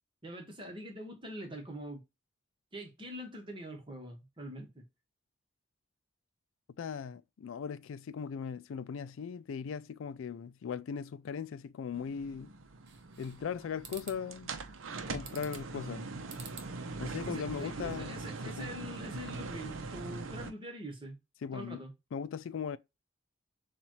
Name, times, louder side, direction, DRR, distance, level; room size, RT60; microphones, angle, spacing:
voice 1, 0.2-2.0 2.7-4.8 17.3-21.2 21.5-21.9, equal, 25° right, 1.3 m, -44 dB
voice 2, 6.8-12.5 13.2-14.5 15.1-16.1 17.0-18.2 18.6-18.7 21.4-21.8 22.1-22.8, left 6 dB, 85° left, 0.4 m, -39 dB
sound 1, 11.9-20.5, right 3 dB, 90° right, 0.7 m, -42 dB
sound 2, 12.9-13.5 13.8-14.2 15.2-15.8 16.3-16.7 17.1-18.1, right 5 dB, 60° right, 1.1 m, -49 dB
6.9 x 2.5 x 3.0 m
head